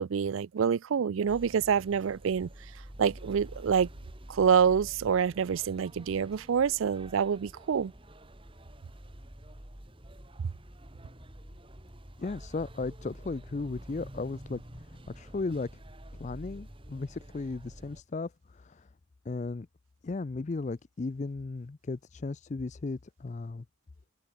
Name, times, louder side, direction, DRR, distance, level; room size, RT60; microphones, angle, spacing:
voice 1, 0.0-2.5 3.0-3.9 4.3-7.9, right 7 dB, 80° right, 0.4 m, -26 dB
sound 1, 1.3-18.0, right 1 dB, 25° right, 2.6 m, -48 dB
voice 2, 12.2-14.6 15.1-15.7 16.2-18.8 19.3-19.7 20.0-23.6, left 3 dB, 35° left, 0.4 m, -35 dB
head